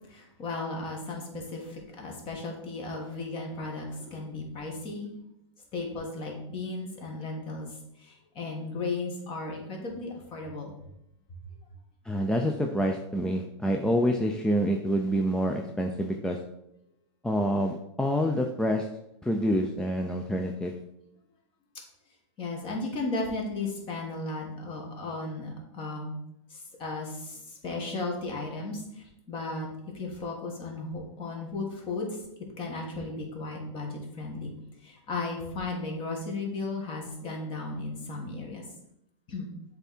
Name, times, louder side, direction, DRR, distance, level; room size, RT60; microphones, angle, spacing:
voice 1, 0.1-5.1 5.7-7.7 8.0-10.8 22.4-26.2 26.5-29.7 29.9-34.5 34.8-38.6 39.3-39.5, left 3 dB, 35° left, 1 dB, 2.0 m, -35 dB
voice 2, 12.1-16.4 17.2-18.8 19.2-20.7, equal, 5° left, 2 dB, 0.5 m, -27 dB
7.8 x 3.6 x 4.3 m, 0.81 s
hypercardioid pair, 120°, 16 cm